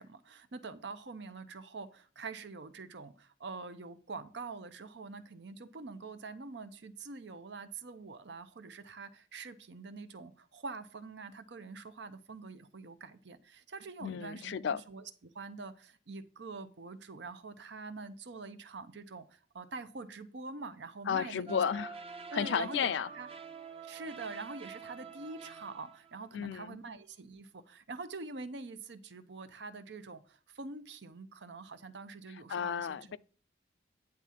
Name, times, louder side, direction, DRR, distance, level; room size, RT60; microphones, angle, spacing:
voice 1, 0.0-21.6 22.3-23.3 23.8-33.2, right 3 dB, 75° right, 0.7 m, -45 dB
voice 2, 14.0-14.8 21.1-22.0 22.3-23.1 26.3-26.8 32.5-33.2, left 7 dB, 80° left, 0.4 m, -33 dB
sound 1, 21.5-26.3, right 6 dB, 30° right, 0.6 m, -47 dB
9.7 x 3.6 x 5.8 m
head